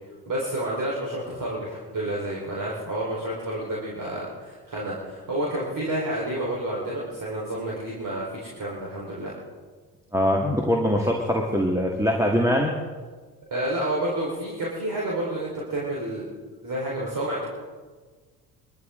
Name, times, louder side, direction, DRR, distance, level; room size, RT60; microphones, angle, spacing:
voice 1, 0.3-9.3 13.5-16.3 16.6-17.5, right 1 dB, 40° right, -5 dB, 4.5 m, -29 dB
voice 2, 10.1-12.7, equal, 5° right, -1 dB, 2.0 m, -22 dB
22.0 x 14.0 x 3.8 m, 1.4 s
hypercardioid pair, 60°, 49 cm